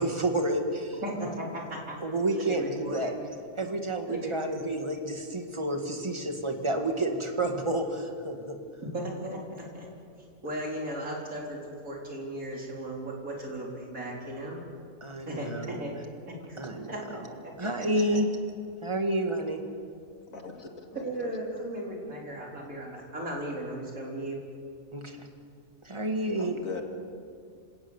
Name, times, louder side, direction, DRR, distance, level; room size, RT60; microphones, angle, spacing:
voice 1, 0.0-1.3 2.0-3.1 3.6-8.6 15.0-15.8 16.6-16.9 17.6-18.3 18.8-19.6 24.9-25.3 25.8-26.6, right 1 dB, 20° right, 4 dB, 2.0 m, -30 dB
voice 2, 1.0-2.0 2.3-3.1 4.0-4.5 8.9-9.9 10.4-14.6 15.3-15.9 16.5-16.6 16.9-17.7 21.0-24.4, right 1 dB, 80° right, -2 dB, 4.5 m, -36 dB
voice 3, 20.3-21.3 26.4-26.8, left 4 dB, 75° left, 3 dB, 2.6 m, -40 dB
27.0 x 17.5 x 7.2 m, 2.2 s
omnidirectional pair, 1.4 m